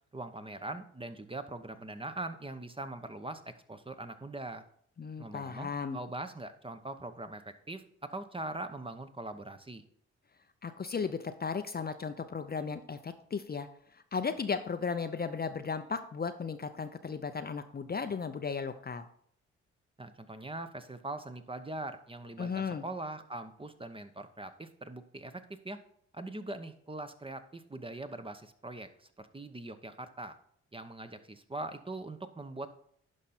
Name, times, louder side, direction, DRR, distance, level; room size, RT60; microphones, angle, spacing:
voice 1, 0.1-4.6 5.2-9.8 20.0-25.8 26.1-30.3 30.7-32.7, right 2 dB, 15° right, 9 dB, 0.9 m, -42 dB
voice 2, 5.0-6.0 10.6-13.7 13.9-19.1 22.4-22.8, left 5 dB, 30° left, 9 dB, 0.7 m, -35 dB
11.0 x 5.3 x 4.2 m, 0.65 s
hypercardioid pair, 45°, 32 cm